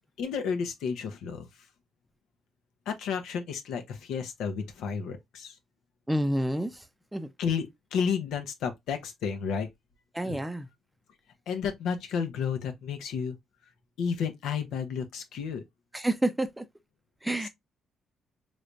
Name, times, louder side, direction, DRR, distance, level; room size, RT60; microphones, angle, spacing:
voice 1, 0.2-1.5 2.9-5.5 7.4-7.7 7.9-9.7 10.2-10.4 11.5-13.4 14.0-15.6, left 6 dB, 85° left, 0.7 m, -31 dB
voice 2, 6.1-6.8 7.1-7.3 10.1-10.7 15.9-16.6 17.2-17.5, right 1 dB, 10° right, 0.5 m, -29 dB
3.2 x 3.1 x 2.4 m
cardioid pair, 90°, 0 cm